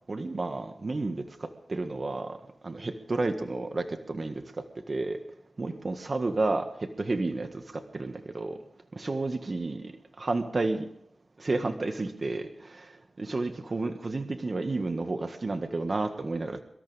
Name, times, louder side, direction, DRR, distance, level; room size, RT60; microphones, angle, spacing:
voice 1, 0.1-5.2 5.6-8.6 8.9-10.9 11.4-16.6, right 3 dB, 50° right, 6 dB, 1.7 m, -31 dB
24.5 x 13.5 x 3.5 m, 0.75 s
cardioid pair, 60°, 0 cm